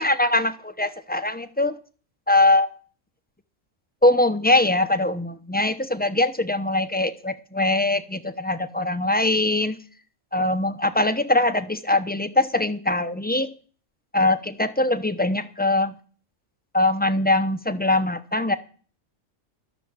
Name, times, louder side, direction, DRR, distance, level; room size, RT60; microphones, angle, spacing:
voice 1, 0.0-1.8 2.3-2.7 4.0-9.8 10.3-13.5 14.1-15.9 16.7-18.6, left 2 dB, 10° left, 10 dB, 0.7 m, -22 dB
13.0 x 7.2 x 8.8 m, 0.40 s
omnidirectional pair, 1.4 m